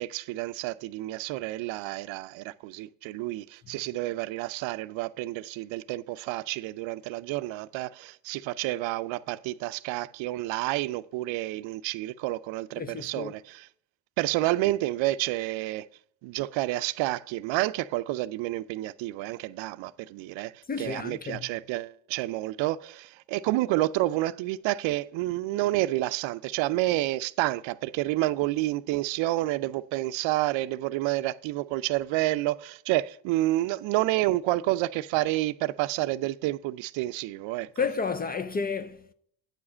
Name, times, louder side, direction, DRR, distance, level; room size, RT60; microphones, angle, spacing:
voice 1, 0.0-13.7 14.2-15.9 16.2-20.5 20.8-37.7, right 17 dB, 80° right, 0.6 m, -29 dB
voice 2, 12.8-13.3 20.7-21.5 37.8-39.1, left 5 dB, 25° left, 0.3 m, -31 dB
9.3 x 4.9 x 6.1 m
cardioid pair, 115°, 45 cm